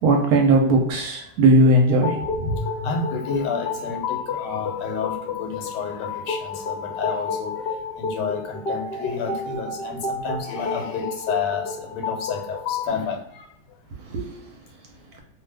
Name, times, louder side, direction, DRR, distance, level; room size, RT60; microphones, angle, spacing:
voice 1, 0.0-2.6 14.0-14.3, right 1 dB, 70° right, 1 dB, 1.1 m, -18 dB
sound 1, 1.9-12.9, left 4 dB, 50° left, 0.7 m, -31 dB
voice 2, 2.4-13.5, left 5 dB, 80° left, 3 dB, 1.3 m, -30 dB
2.7 x 2.3 x 3.3 m, 0.71 s
omnidirectional pair, 1.8 m